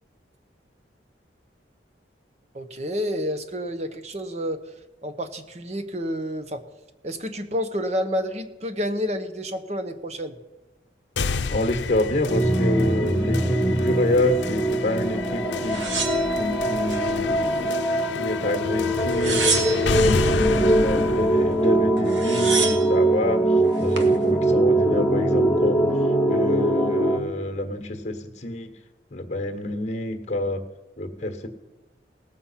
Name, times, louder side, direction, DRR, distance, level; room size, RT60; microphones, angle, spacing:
voice 1, 2.5-4.6 5.0-6.6 7.0-10.4, equal, 40° right, 8 dB, 0.9 m, -29 dB
sound 1, 11.2-23.1, left 4 dB, 90° left, 0.6 m, -31 dB
voice 2, 11.5-15.8 16.4-17.8 18.1-25.9 26.3-28.7 29.1-30.6 31.0-31.5, left 1 dB, 40° left, 6 dB, 1.3 m, -27 dB
sound 2, 12.3-27.2, right 1 dB, 5° left, 0.9 m, -22 dB
sound 3, 15.7-17.0 17.5-18.3 19.0-20.1 21.6-21.7 22.0-22.9 23.6-24.1, right 5 dB, 90° right, 1.4 m, -28 dB
18.0 x 7.3 x 5.7 m, 1.0 s
head